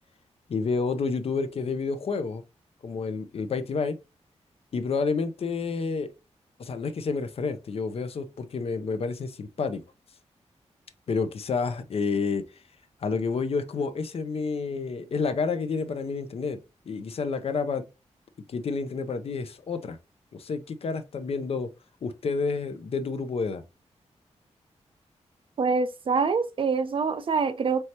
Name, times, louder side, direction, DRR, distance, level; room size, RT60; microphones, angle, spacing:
voice 1, 0.5-2.4 2.8-4.0 4.7-6.1 6.6-9.8 11.1-12.4 13.0-16.6 16.9-17.9 18.5-20.0 20.3-21.7 22.0-23.6, left 4 dB, 55° left, 0.6 m, -29 dB
voice 2, 25.6-27.8, right 5 dB, 50° right, 0.5 m, -25 dB
4.4 x 3.2 x 2.8 m
wide cardioid pair, 135°, 12 cm